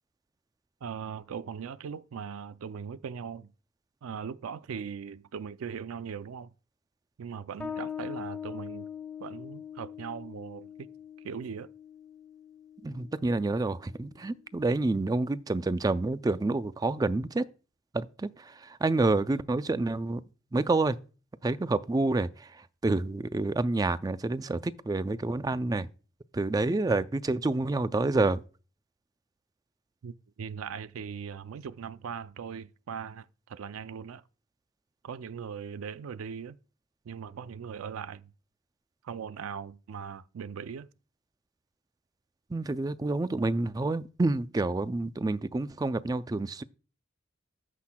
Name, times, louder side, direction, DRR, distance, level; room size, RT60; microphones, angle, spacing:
voice 1, 0.8-3.5 4.0-6.5 7.2-8.9 9.2-10.9 11.2-11.7 30.0-34.2 35.0-36.6 37.0-38.3 39.0-40.9, right 7 dB, 90° right, 0.4 m, -39 dB
Bass guitar, 7.6-14.8, left 8 dB, 5° left, 1.2 m, -42 dB
voice 2, 12.8-17.4 17.9-20.2 20.5-21.0 21.4-22.5 22.8-25.9 26.3-28.4 42.5-46.6, right 2 dB, 20° right, 0.3 m, -28 dB
14.0 x 5.8 x 2.2 m
head